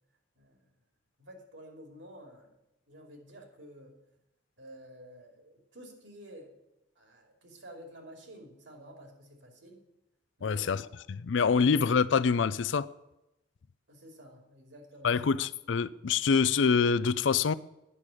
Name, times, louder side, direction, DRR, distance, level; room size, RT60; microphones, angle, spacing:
voice 1, 1.2-2.5 2.9-3.9 4.6-6.5 7.0-9.8 10.4-10.9 13.9-15.1, equal, 70° right, 2.7 m, -50 dB
voice 2, 10.4-10.8 11.1-12.9 15.0-17.5, left 5 dB, 80° left, 0.4 m, -25 dB
10.0 x 6.4 x 8.9 m
head